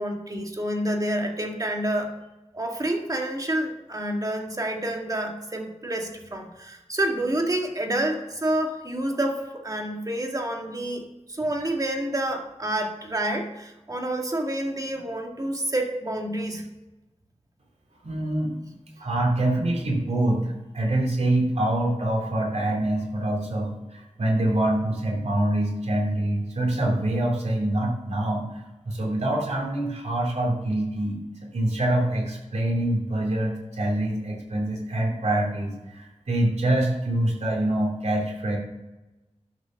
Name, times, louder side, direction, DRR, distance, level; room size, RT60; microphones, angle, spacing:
voice 1, 0.0-2.1 2.5-16.7, right 1 dB, 30° right, 2 dB, 1.8 m, -28 dB
voice 2, 18.0-18.5 19.0-38.6, right 1 dB, 70° right, -1 dB, 3.0 m, -25 dB
12.5 x 5.2 x 6.4 m, 1.1 s
wide cardioid pair, 90°, 12 cm